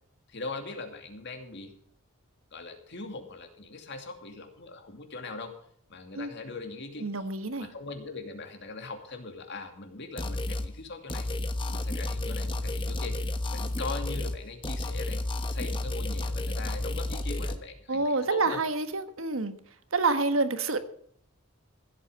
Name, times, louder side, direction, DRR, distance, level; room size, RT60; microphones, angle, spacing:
voice 1, 0.3-1.7 2.5-5.6 5.9-7.2 7.6-11.3 11.7-15.2 15.5-18.6, left 3 dB, 55° left, 5 dB, 2.5 m, -41 dB
voice 2, 7.0-7.7 17.9-19.5 19.9-20.8, right 3 dB, 70° right, 9 dB, 1.4 m, -27 dB
sound 1, 10.2-10.7 11.1-14.4 14.6-17.6, left 2 dB, 25° left, 1.2 m, -31 dB
15.5 x 8.5 x 6.8 m, 0.64 s
head